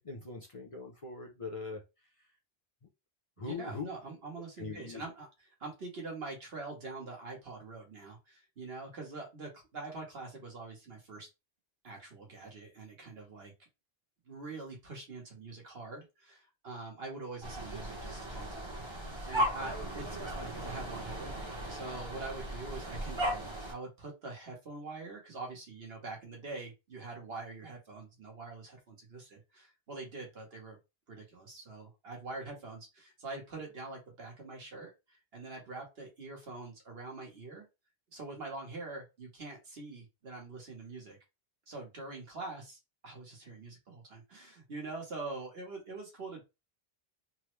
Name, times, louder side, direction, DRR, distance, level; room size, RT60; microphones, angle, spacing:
voice 1, 0.0-1.8 3.4-3.9 4.6-5.0, left 4 dB, 40° left, 0.6 m, -41 dB
voice 2, 3.4-11.3 11.8-13.5 14.3-18.8 19.2-30.8 31.1-37.6 38.1-41.2 41.7-46.4, right 3 dB, 70° right, 1.4 m, -44 dB
sound 1, 17.4-23.7, equal, 30° right, 0.8 m, -37 dB
3.4 x 2.1 x 3.1 m
omnidirectional pair, 1.0 m